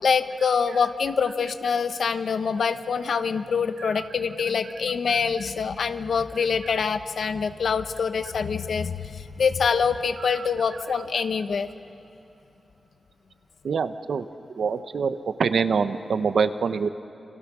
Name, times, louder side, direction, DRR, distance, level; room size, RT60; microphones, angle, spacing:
voice 1, 0.0-11.7, left 6 dB, 80° left, 10 dB, 0.9 m, -25 dB
voice 2, 13.6-14.3 14.6-16.9, right 5 dB, 85° right, 11 dB, 0.8 m, -25 dB
29.0 x 26.0 x 6.2 m, 2.8 s
wide cardioid pair, 155°, 0 cm